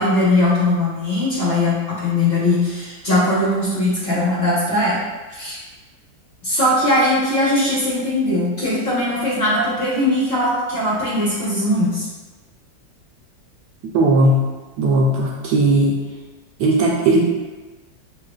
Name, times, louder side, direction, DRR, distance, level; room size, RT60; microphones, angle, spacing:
voice 1, 0.0-5.0 5.3-5.6 6.4-12.1, left 1 dB, 40° left, -8 dB, 1.1 m, -20 dB
voice 2, 13.8-14.4 14.8-16.0 16.6-17.2, right 2 dB, 70° right, -2 dB, 1.1 m, -17 dB
6.9 x 2.9 x 2.3 m, 1.2 s
omnidirectional pair, 2.0 m